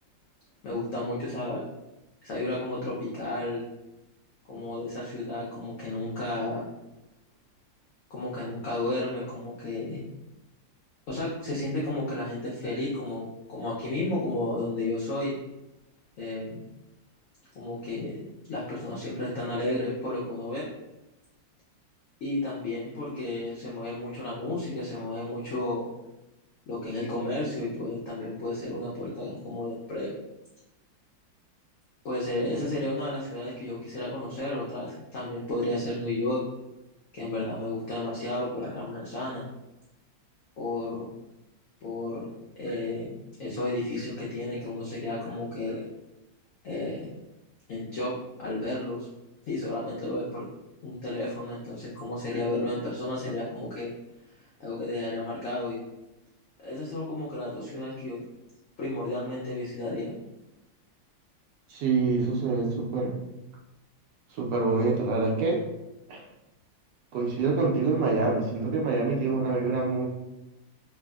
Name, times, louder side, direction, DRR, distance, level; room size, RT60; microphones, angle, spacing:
voice 1, 0.6-1.6 2.2-3.6 4.5-6.6 8.1-10.1 11.1-13.2 13.5-15.4 16.2-16.7 17.6-20.6 22.2-25.9 26.7-30.2 32.0-36.4 37.1-39.4 40.6-41.1 41.8-42.3 42.6-45.8 46.6-47.1 47.7-48.1 48.4-49.1 49.5-50.4 50.8-53.9 54.6-55.8 56.6-58.2 58.8-60.1, left 2 dB, 80° left, -6 dB, 0.7 m, -32 dB
voice 2, 61.7-63.1 64.3-65.6 66.1-66.2 67.1-70.1, right 3 dB, 75° right, -2 dB, 1.1 m, -26 dB
3.3 x 2.0 x 2.2 m, 0.96 s
omnidirectional pair, 2.0 m